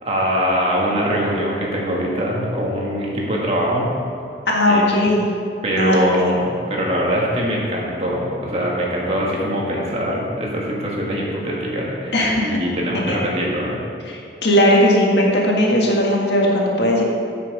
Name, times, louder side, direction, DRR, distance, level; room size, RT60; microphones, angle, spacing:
voice 1, 0.0-3.9 4.7-4.9 5.6-12.1 12.4-13.8, equal, 35° right, -4 dB, 1.8 m, -22 dB
voice 2, 4.5-5.3 5.7-6.3 12.1-12.6 12.9-13.2 14.1-17.0, left 1 dB, 80° left, -2 dB, 1.7 m, -18 dB
9.0 x 5.9 x 6.0 m, 2.5 s
head